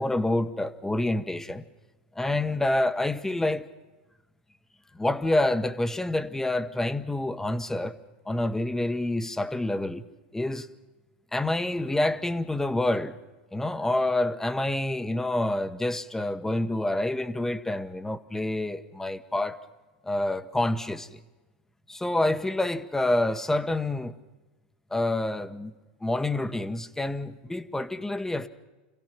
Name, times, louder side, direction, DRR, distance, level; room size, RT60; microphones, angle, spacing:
voice 1, 0.0-1.7 2.1-3.7 4.9-8.0 8.2-10.1 10.3-10.7 11.3-13.2 13.5-19.6 20.0-21.2 21.9-24.2 24.9-25.7 26.0-28.5, left 1 dB, 5° left, 1.0 m, -27 dB
27.0 x 16.5 x 5.9 m
hypercardioid pair, 105°, 6 cm